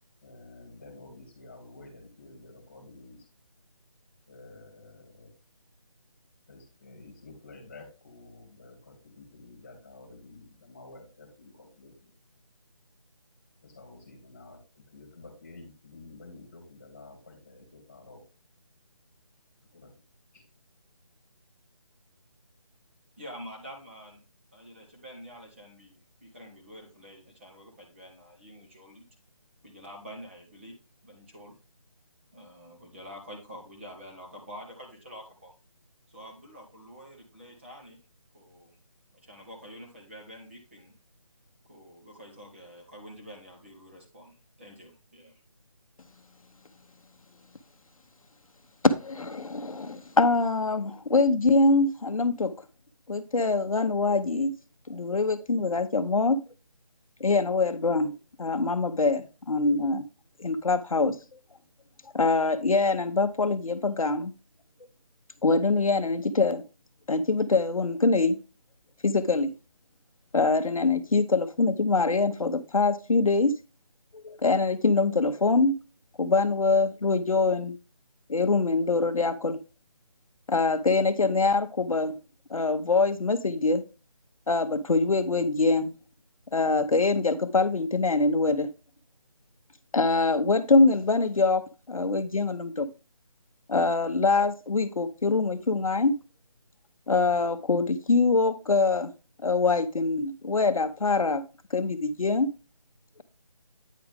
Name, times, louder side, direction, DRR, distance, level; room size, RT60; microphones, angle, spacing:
voice 1, 0.2-3.3 4.3-5.3 6.5-12.1 13.6-18.3 19.7-19.9 20.3-20.5, left 2 dB, 20° left, 2.1 m, -50 dB
voice 2, 23.2-24.2 24.5-29.1 29.6-30.7 31.0-31.5 32.3-35.5 36.1-38.0 38.3-38.8 39.1-40.9 41.6-45.4, equal, 20° right, 1.4 m, -47 dB
voice 3, 48.8-52.5 53.1-54.5 54.9-56.4 57.2-60.0 60.4-61.2 62.1-64.3 65.4-66.6 67.1-68.4 69.0-69.5 70.3-73.6 74.1-75.8 76.2-77.7 78.3-79.6 80.5-82.1 82.5-83.8 84.5-85.9 86.5-88.7 89.9-92.9 93.7-96.2 97.1-99.1 99.4-101.4 101.7-102.5, left 3 dB, 75° left, 0.8 m, -24 dB
9.3 x 4.8 x 3.5 m
figure-of-eight pair, 175°, 18 cm